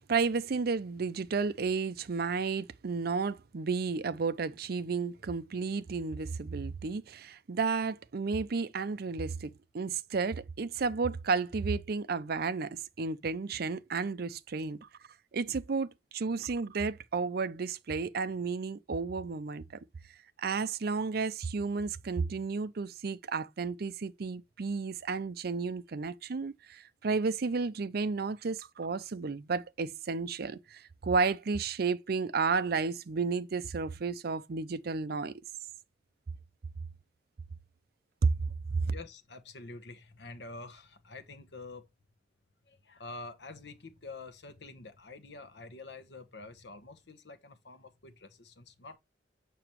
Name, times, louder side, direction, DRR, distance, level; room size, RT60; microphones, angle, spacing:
voice 1, 0.1-14.9 15.3-19.7 20.4-35.4 38.2-38.3 38.7-38.8, right 4 dB, 60° right, 0.5 m, -32 dB
voice 2, 38.9-41.9 42.7-49.0, left 3 dB, 75° left, 1.1 m, -47 dB
7.0 x 5.9 x 3.0 m
head